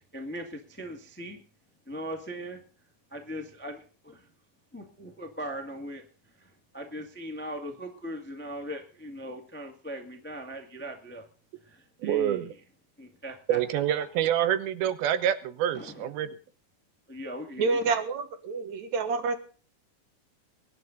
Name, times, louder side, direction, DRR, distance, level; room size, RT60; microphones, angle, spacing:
voice 1, 0.0-1.4 1.9-2.6 3.1-4.3 4.7-6.0 6.4-11.2 11.6-12.5 13.0-13.6 15.7-16.1 17.1-17.9, equal, 15° left, 4 dB, 0.3 m, -39 dB
voice 2, 12.0-12.5 13.5-16.3, right 11 dB, 80° right, 13 dB, 2.8 m, -27 dB
voice 3, 17.6-19.4, right 4 dB, 60° right, 9 dB, 2.3 m, -28 dB
23.0 x 10.0 x 4.0 m, 0.38 s
omnidirectional pair, 4.4 m